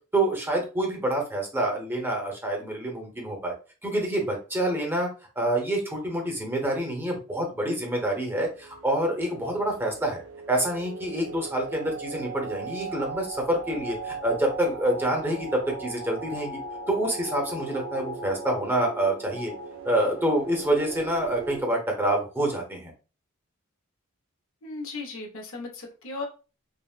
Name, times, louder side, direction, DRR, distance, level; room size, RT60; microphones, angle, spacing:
voice 1, 0.1-3.5 3.8-5.1 5.4-10.2 10.5-16.6 16.9-19.5 19.8-22.9, right 1 dB, 10° right, 0 dB, 0.8 m, -27 dB
sound 1, 8.3-21.6, right 3 dB, 80° right, 0.4 m, -38 dB
voice 2, 24.6-26.3, left 3 dB, 70° left, 1 dB, 0.8 m, -36 dB
3.5 x 2.0 x 2.4 m, 0.34 s
head